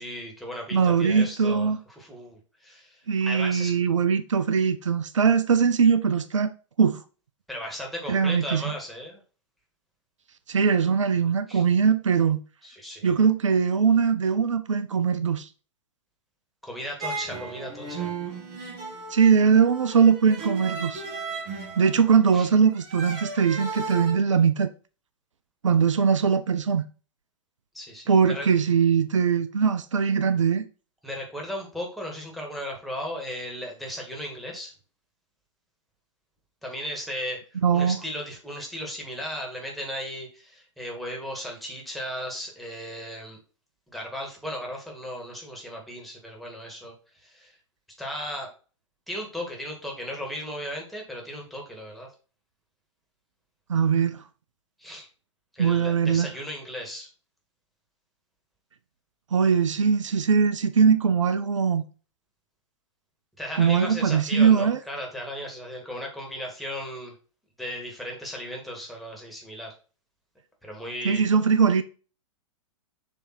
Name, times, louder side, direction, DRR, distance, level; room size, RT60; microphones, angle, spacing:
voice 1, 0.0-3.7 7.5-9.2 11.5-11.6 12.6-13.1 16.6-18.1 22.3-22.5 27.7-28.5 31.0-34.7 36.6-43.4 43.9-46.9 47.2-47.5 48.0-48.5 49.1-52.1 54.8-55.1 55.5-57.1 63.4-67.1 67.6-69.8 70.6-71.2, equal, ahead, 2.1 m, -36 dB
voice 2, 0.7-1.8 3.1-6.5 6.8-7.0 8.1-8.7 10.5-12.4 13.0-15.5 19.1-21.0 21.8-24.7 25.6-26.9 28.1-30.7 37.6-38.0 53.7-54.2 55.6-56.3 59.3-61.8 63.6-64.8 71.0-71.8, right 6 dB, 70° right, 0.6 m, -21 dB
sound 1, 17.0-24.1, right 4 dB, 35° right, 1.9 m, -35 dB
7.2 x 3.4 x 4.4 m
figure-of-eight pair, 105°, 16 cm